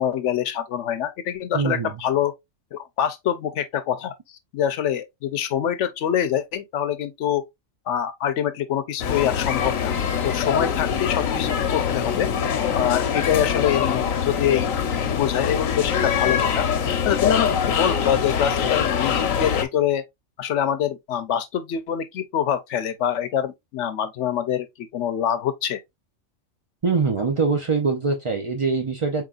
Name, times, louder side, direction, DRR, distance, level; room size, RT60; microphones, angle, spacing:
voice 1, 0.0-2.3 2.7-7.4 7.9-9.9 10.2-12.3 12.7-14.7 15.1-20.0 20.4-25.8, left 10 dB, 70° left, 0.9 m, -25 dB
voice 2, 1.5-2.0 26.8-29.2, right 4 dB, 55° right, 0.3 m, -23 dB
sound 1, 9.0-19.6, left 7 dB, 85° left, 1.1 m, -23 dB
4.5 x 3.7 x 2.4 m
omnidirectional pair, 1.4 m